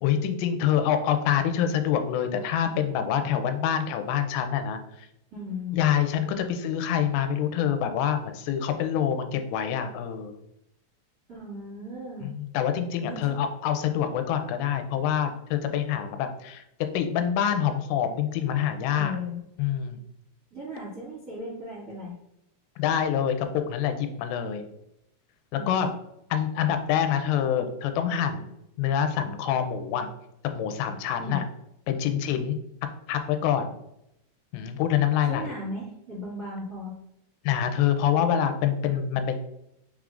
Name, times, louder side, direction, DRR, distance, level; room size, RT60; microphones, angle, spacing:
voice 1, 0.0-5.1 5.7-10.3 12.2-16.6 16.9-19.2 19.6-20.0 22.8-24.7 25.5-25.9 26.3-30.1 30.4-31.4 31.9-32.6 33.1-33.8 34.5-35.5 37.4-39.4, left 9 dB, 85° left, 7 dB, 2.7 m, -26 dB
voice 2, 5.3-5.8 11.3-12.3 13.0-13.4 18.9-19.4 20.5-22.2 25.6-25.9 31.2-31.4 35.3-36.9, left 2 dB, 70° right, -9 dB, 0.8 m, -36 dB
6.1 x 3.6 x 2.4 m, 0.80 s
omnidirectional pair, 5.0 m